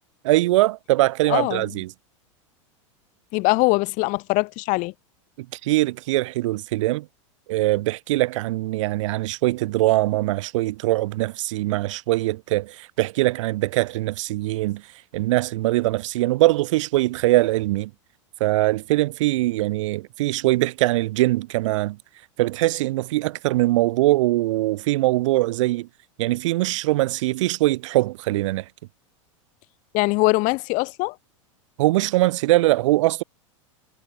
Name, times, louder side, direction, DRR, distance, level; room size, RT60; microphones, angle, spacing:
voice 1, 0.2-1.9 5.6-7.1 7.5-14.8 15.1-17.9 18.4-22.0 22.4-25.9 26.2-28.6 31.8-33.2, right 18 dB, 70° right, 1.8 m, -22 dB
voice 2, 1.3-1.8 3.3-4.9 29.9-31.1, left 25 dB, 50° left, 2.7 m, -22 dB
hypercardioid pair, 110°, 17 cm